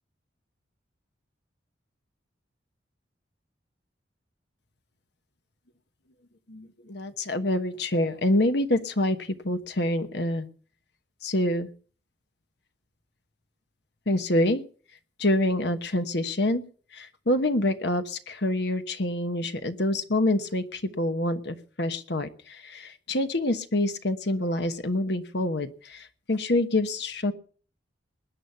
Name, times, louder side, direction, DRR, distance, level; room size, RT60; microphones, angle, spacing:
voice 1, 6.5-10.5 11.2-11.7 14.1-14.6 15.2-16.6 16.9-27.3, left 1 dB, 60° left, 9 dB, 1.1 m, -26 dB
20.5 x 9.7 x 5.7 m, 0.42 s
head